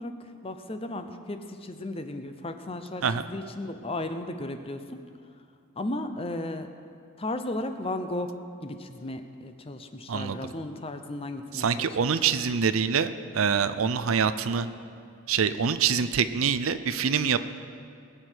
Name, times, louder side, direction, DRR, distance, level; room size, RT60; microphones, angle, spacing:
voice 1, 0.0-5.0 5.7-6.7 7.2-8.3 8.6-11.9 12.2-12.3, left 1 dB, 25° left, 8 dB, 0.7 m, -35 dB
voice 2, 10.1-10.5 11.5-14.7 15.3-17.4, right 6 dB, 75° right, 12 dB, 0.5 m, -25 dB
20.5 x 8.7 x 4.6 m, 2.5 s
head